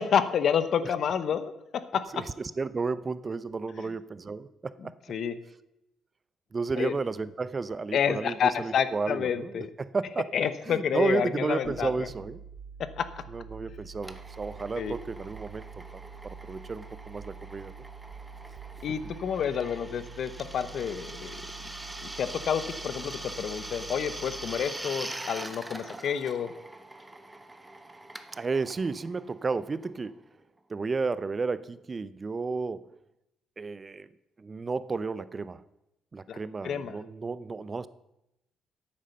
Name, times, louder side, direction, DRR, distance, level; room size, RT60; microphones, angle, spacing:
voice 1, 0.0-1.5 1.9-2.0 5.1-5.3 6.8-7.0 7.9-9.7 10.3-12.1 13.0-13.1 14.8-15.0 18.8-21.4 22.0-26.5 36.3-36.4 36.6-37.0, left 8 dB, 65° left, 13 dB, 0.9 m, -29 dB
voice 2, 2.1-4.9 6.5-12.4 13.3-17.7 28.3-30.2 30.7-32.9 33.6-34.1 34.4-35.6 36.1-37.9, right 4 dB, 30° right, 16 dB, 0.6 m, -32 dB
sound 1, 11.6-24.6, right 6 dB, 85° right, 0.9 m, -46 dB
Drill, 14.0-30.4, right 1 dB, 15° right, 0.9 m, -43 dB
9.7 x 8.7 x 6.6 m, 0.89 s
cardioid pair, 90°, 0 cm